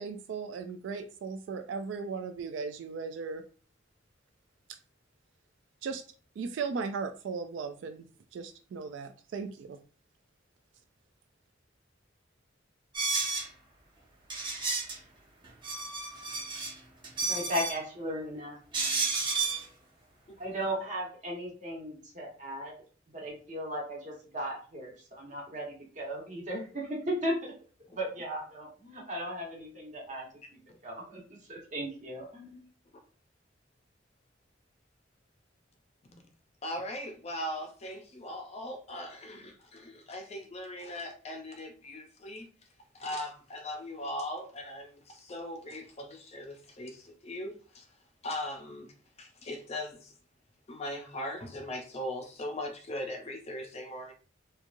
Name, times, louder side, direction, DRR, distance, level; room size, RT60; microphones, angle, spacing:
voice 1, 0.0-3.4 5.8-6.0 6.4-8.1 8.3-9.8, right 5 dB, 75° right, 0.3 m, -37 dB
sound 1, 12.9-13.5 14.3-15.0 15.4-16.7 17.0-17.8 18.7-19.6, right 4 dB, 25° right, 0.8 m, -31 dB
voice 2, 17.3-18.5 20.4-22.7 23.1-27.5 27.9-30.2 30.8-31.2 31.5-32.6, equal, 40° right, 1.1 m, -36 dB
voice 3, 36.6-42.5 42.9-47.9 48.2-48.9 49.2-50.1 50.7-54.1, left 1 dB, 35° left, 0.5 m, -39 dB
3.0 x 2.2 x 2.5 m
head